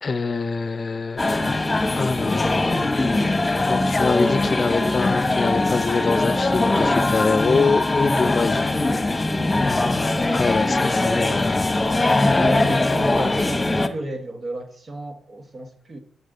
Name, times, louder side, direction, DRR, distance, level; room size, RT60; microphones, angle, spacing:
voice 1, 0.0-1.2 2.0-2.8 3.7-8.7 10.3-11.7, left 4 dB, 45° left, 0.6 m, -24 dB
sound 1, 1.2-13.9, left 2 dB, 25° left, 1.1 m, -21 dB
voice 2, 12.2-16.0, right 1 dB, 50° right, 1.5 m, -32 dB
12.5 x 7.3 x 4.0 m
supercardioid pair, 50°, 0 cm